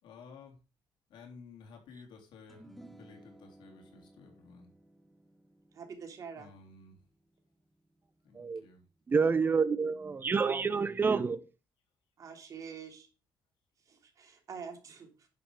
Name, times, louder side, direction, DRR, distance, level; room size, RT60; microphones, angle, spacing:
voice 1, 0.0-0.6 1.1-2.6 3.0-4.7 6.4-6.9 8.2-8.8, left 5 dB, 80° left, 3.8 m, -53 dB
sound 1, 2.5-9.0, right 1 dB, ahead, 1.3 m, -58 dB
voice 2, 5.7-6.5 12.2-13.1 13.8-15.3, right 6 dB, 45° right, 3.2 m, -46 dB
voice 3, 9.1-11.4, right 5 dB, 25° right, 0.9 m, -28 dB
10.5 x 7.0 x 5.0 m
cardioid pair, 140°, 8 cm